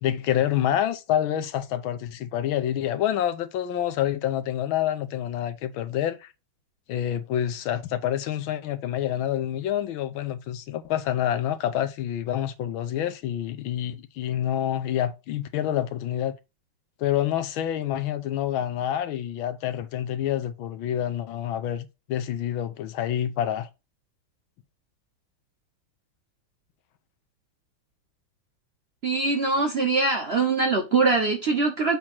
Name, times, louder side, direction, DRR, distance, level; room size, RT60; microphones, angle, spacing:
voice 1, 0.0-6.3 6.9-16.3 17.0-23.7, left 11 dB, 85° left, 1.5 m, -27 dB
voice 2, 29.0-32.0, right 3 dB, 40° right, 1.0 m, -23 dB
7.2 x 3.0 x 6.0 m
omnidirectional pair, 2.2 m